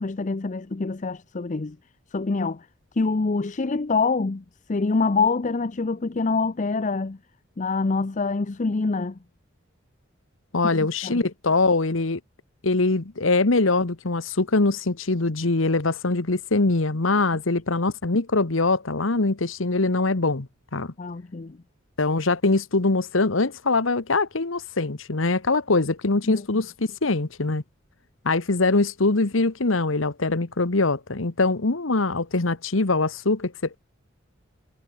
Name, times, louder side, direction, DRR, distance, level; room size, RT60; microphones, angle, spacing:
voice 1, 0.0-1.8 2.1-2.7 3.0-4.4 4.7-7.2 7.6-9.2 10.7-11.2 21.0-21.6 26.2-26.4, left 3 dB, 40° left, 0.6 m, -25 dB
voice 2, 10.5-12.2 12.6-20.5 20.7-20.9 22.0-27.6 28.2-33.8, left 3 dB, 80° left, 1.3 m, -23 dB
head